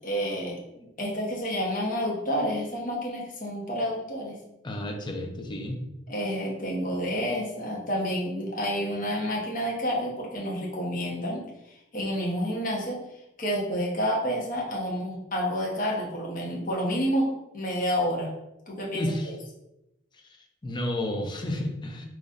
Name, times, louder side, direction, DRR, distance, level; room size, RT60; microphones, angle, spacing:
voice 1, 0.0-0.6 1.0-4.4 6.1-11.5 11.9-13.0 13.4-18.3 18.7-19.3, equal, 45° left, -3 dB, 1.0 m, -29 dB
voice 2, 4.6-5.8 18.9-19.3 20.1-22.1, left 1 dB, 25° left, 2 dB, 0.5 m, -32 dB
3.8 x 3.1 x 2.5 m, 0.88 s
head